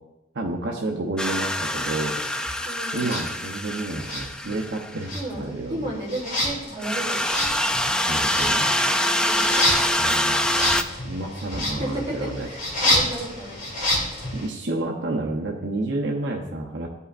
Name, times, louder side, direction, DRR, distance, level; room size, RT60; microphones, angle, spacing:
voice 1, 0.3-2.2 2.9-6.0 8.1-8.7 10.0-12.5 14.3-16.9, right 2 dB, 75° right, -1 dB, 0.8 m, -30 dB
sound 1, 1.2-5.0 6.8-10.8, left 1 dB, 5° left, 0.3 m, -25 dB
voice 2, 2.6-3.1 5.1-7.4 9.2-9.6 11.6-11.9 12.4-13.5, right 1 dB, 30° right, -5 dB, 2.8 m, -34 dB
sound 2, 3.0-3.3 4.0-4.8 5.0-14.5, left 1 dB, 50° left, 2.1 m, -28 dB
13.5 x 5.5 x 2.5 m, 0.97 s
head